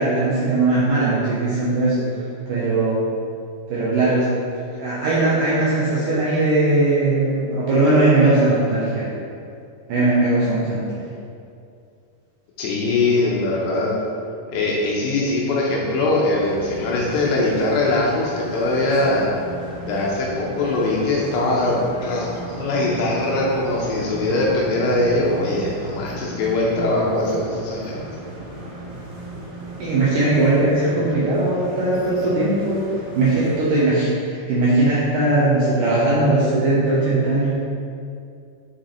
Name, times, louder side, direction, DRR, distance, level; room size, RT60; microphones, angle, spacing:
voice 1, 0.0-2.1 2.5-3.0 3.7-4.3 4.8-9.1 9.9-11.0 29.8-32.8 33.2-37.5, right 2 dB, 75° right, -8 dB, 1.9 m, -19 dB
voice 2, 12.6-14.0 14.5-19.3 19.9-28.1, left 2 dB, 80° left, -4 dB, 3.0 m, -21 dB
sound 1, 16.4-33.7, right 1 dB, 55° right, 1.3 m, -35 dB
7.6 x 5.3 x 4.3 m, 2.4 s
omnidirectional pair, 5.3 m